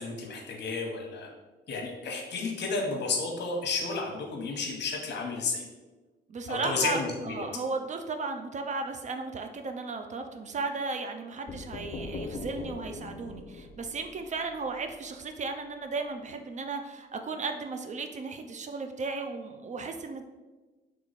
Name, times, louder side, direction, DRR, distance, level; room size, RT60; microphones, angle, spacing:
voice 1, 0.0-1.3 1.7-5.7 6.5-7.4, left 4 dB, 60° left, 1 dB, 1.0 m, -32 dB
voice 2, 6.3-20.2, right 4 dB, 40° right, 6 dB, 0.4 m, -35 dB
sound 1, 11.5-15.2, left 3 dB, 30° left, 0.4 m, -41 dB
3.3 x 3.1 x 4.0 m, 1.2 s
cardioid pair, 90°, 20 cm